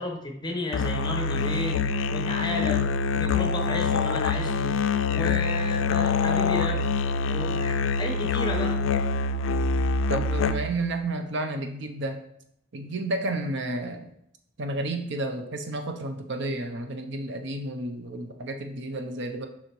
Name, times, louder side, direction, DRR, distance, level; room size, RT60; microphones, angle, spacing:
voice 1, 0.0-1.8 2.1-2.9 3.1-4.8 5.1-6.8 7.2-8.8, left 2 dB, 25° left, 2 dB, 1.0 m, -33 dB
Musical instrument, 0.7-10.9, left 4 dB, 80° left, 0.3 m, -25 dB
voice 2, 10.1-12.2 12.7-14.1 14.6-19.5, right 2 dB, 65° right, 6 dB, 0.7 m, -31 dB
6.6 x 5.4 x 3.1 m, 0.76 s
head